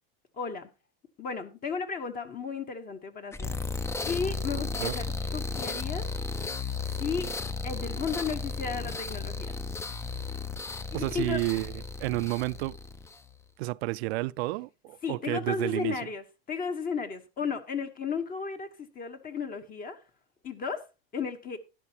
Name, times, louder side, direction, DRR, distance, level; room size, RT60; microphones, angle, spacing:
voice 1, 0.3-0.7 1.2-3.6 4.0-5.1 5.3-6.1 7.0-7.3 7.6-9.5 10.9-11.4 15.0-20.0 20.4-20.9 21.1-21.6, left 5 dB, 30° left, 1.1 m, -34 dB
sound 1, 3.3-13.3, left 3 dB, 10° left, 0.4 m, -34 dB
voice 2, 10.9-12.8 13.6-16.0, right 21 dB, 75° right, 0.5 m, -31 dB
12.0 x 10.5 x 2.9 m
supercardioid pair, 135°, 31 cm